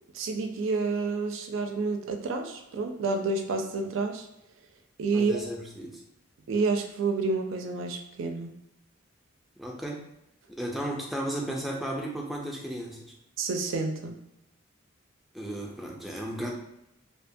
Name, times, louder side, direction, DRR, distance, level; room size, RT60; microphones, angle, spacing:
voice 1, 0.1-4.3 5.0-5.4 6.5-8.5 13.4-14.2, right 4 dB, 70° right, 4 dB, 0.4 m, -29 dB
voice 2, 5.1-6.0 9.6-10.1 10.6-13.1 15.3-16.5, right 1 dB, ahead, -2 dB, 0.3 m, -34 dB
2.7 x 2.2 x 2.6 m, 0.84 s
head